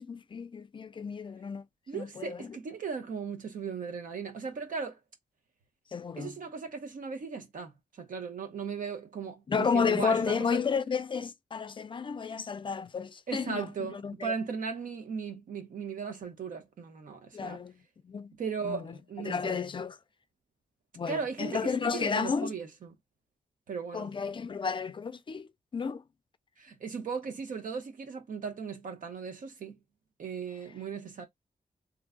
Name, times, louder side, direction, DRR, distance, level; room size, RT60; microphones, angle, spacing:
voice 1, 0.0-1.6 1.9-2.6 5.9-6.3 9.5-14.3 17.3-17.8 18.0-18.3 18.6-18.8 19.2-20.0 20.9-22.5 23.9-26.0, left 5 dB, 35° left, 0.4 m, -32 dB
voice 2, 1.9-5.0 6.2-10.6 13.3-17.6 18.4-19.6 21.1-22.9 23.7-24.1 26.6-29.8 30.2-31.3, right 5 dB, 80° right, 1.0 m, -37 dB
3.1 x 2.2 x 3.7 m
wide cardioid pair, 125°, 14 cm